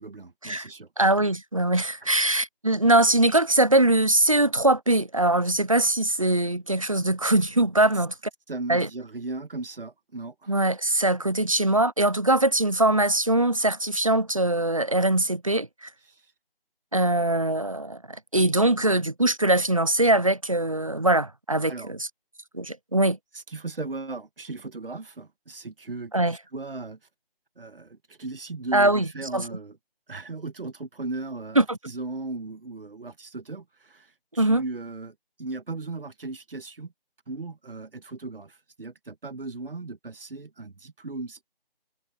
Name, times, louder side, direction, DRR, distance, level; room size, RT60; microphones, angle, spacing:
voice 1, 0.0-0.9 1.2-1.3 2.0-2.1 8.5-10.5 16.1-16.2 21.7-21.9 23.3-27.0 27.6-29.8 30.1-36.9 37.3-41.4, right 3 dB, 65° right, 1.9 m, -37 dB
voice 2, 1.0-8.1 8.7-8.9 10.5-15.9 16.9-22.1 22.5-23.2 26.1-26.4 28.7-29.4 31.6-31.8 34.4-34.6, right 1 dB, 35° right, 0.6 m, -22 dB
figure-of-eight pair, 175°, 30 cm